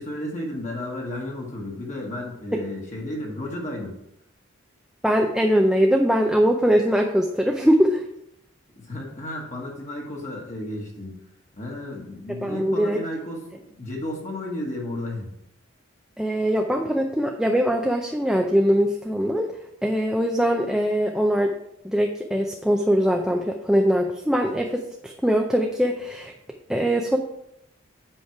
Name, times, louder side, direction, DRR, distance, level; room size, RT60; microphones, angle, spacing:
voice 1, 0.0-3.9 8.8-11.3 11.5-15.3, left 1 dB, 35° left, -2 dB, 1.4 m, -33 dB
voice 2, 5.0-8.0 12.4-13.0 16.2-19.5 19.8-21.5 21.8-26.3 26.7-27.2, equal, 5° right, 1 dB, 0.4 m, -22 dB
8.0 x 5.2 x 4.6 m, 0.79 s
head